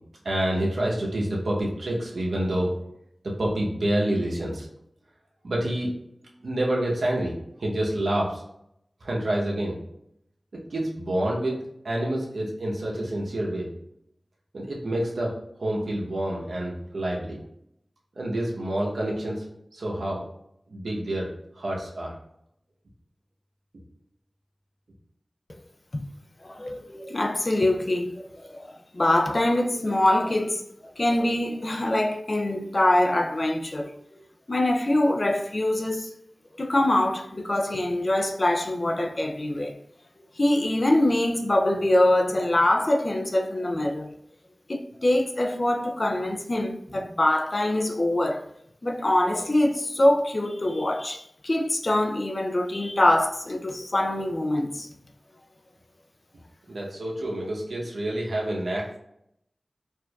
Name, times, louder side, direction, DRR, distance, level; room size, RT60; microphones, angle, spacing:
voice 1, 0.2-2.7 3.2-4.7 5.4-5.9 6.4-7.3 7.6-8.4 9.0-9.8 10.7-11.5 11.8-13.7 14.5-15.3 15.6-17.4 18.2-19.4 19.7-20.2 20.7-21.3 21.5-22.1 56.7-59.0, right 1 dB, 90° right, 0.8 m, -27 dB
voice 2, 26.4-30.6 31.0-33.9 34.5-36.1 36.6-39.7 40.4-44.1 44.7-48.4 48.8-54.9, left 1 dB, 50° left, 0.4 m, -24 dB
4.4 x 2.5 x 2.3 m
wide cardioid pair, 50°, 0 cm